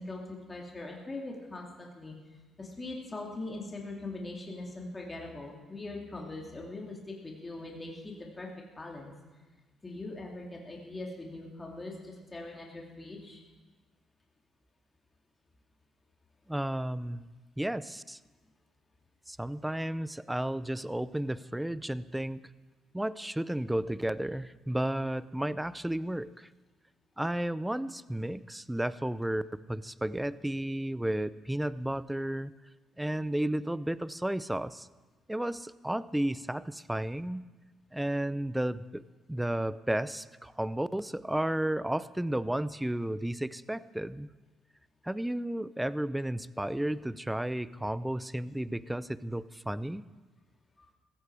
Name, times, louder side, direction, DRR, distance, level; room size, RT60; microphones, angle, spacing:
voice 1, 0.0-8.5 8.8-9.1 9.8-13.4 50.8-50.9, left 2 dB, 25° left, -1 dB, 2.9 m, -41 dB
voice 2, 16.5-17.3 17.6-18.2 19.3-22.4 22.9-26.5 27.2-29.4 29.7-32.5 33.0-34.9 35.3-37.4 37.9-39.0 39.3-44.3 45.0-50.0, right 1 dB, 5° right, 17 dB, 0.6 m, -33 dB
16.5 x 14.5 x 4.9 m, 1.3 s
supercardioid pair, 60°, 0 cm